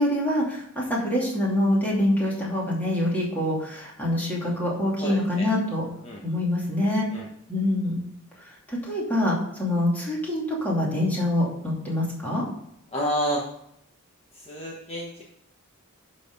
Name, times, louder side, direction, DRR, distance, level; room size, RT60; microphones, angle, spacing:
voice 1, 0.0-5.8 6.2-7.0 7.5-8.0 8.7-12.4, left 1 dB, 10° left, -5 dB, 2.8 m, -25 dB
voice 2, 5.0-5.4 6.0-6.2 7.1-7.3 12.9-13.4 14.5-15.2, equal, 30° left, -3 dB, 1.3 m, -29 dB
11.0 x 4.3 x 5.4 m, 0.74 s
head